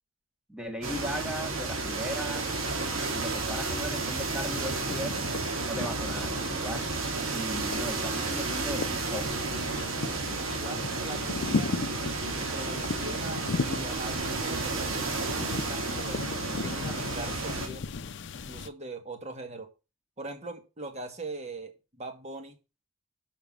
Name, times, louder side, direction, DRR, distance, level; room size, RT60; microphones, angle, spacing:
voice 1, 0.5-2.5 2.7-5.2 5.7-6.9 7.3-9.3, equal, 5° right, 1.6 m, -37 dB
sound 1, 0.8-17.7, right 3 dB, 75° right, 2.6 m, -32 dB
sound 2, 3.6-4.2 4.4-18.7, left 4 dB, 60° left, 0.6 m, -37 dB
voice 2, 10.1-11.8 12.5-17.9 18.4-19.7 20.2-22.5, right 2 dB, 30° right, 1.9 m, -41 dB
6.9 x 5.9 x 7.3 m
head